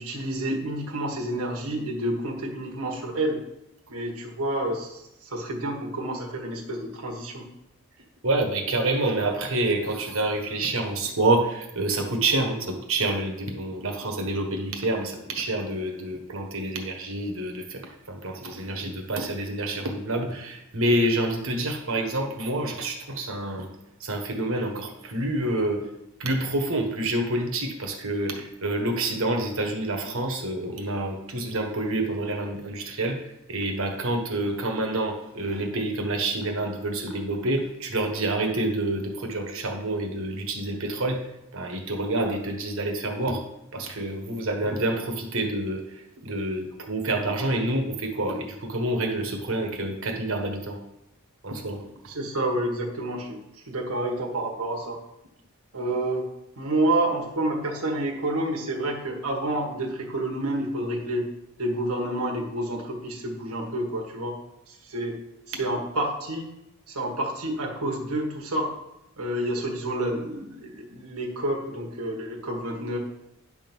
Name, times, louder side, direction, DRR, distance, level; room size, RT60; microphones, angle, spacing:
voice 1, 0.0-3.4 3.9-7.4 52.1-55.0 55.7-56.2 56.6-61.3 61.6-64.4 64.7-65.2 65.5-66.5 66.9-68.7 69.2-73.0, right 1 dB, 85° right, 0 dB, 1.5 m, -29 dB
voice 2, 8.2-23.7 24.0-25.8 26.2-41.2 41.5-43.4 43.7-50.8 51.4-51.8, right 2 dB, 65° right, 3 dB, 1.4 m, -28 dB
9.9 x 3.7 x 6.1 m, 0.86 s
head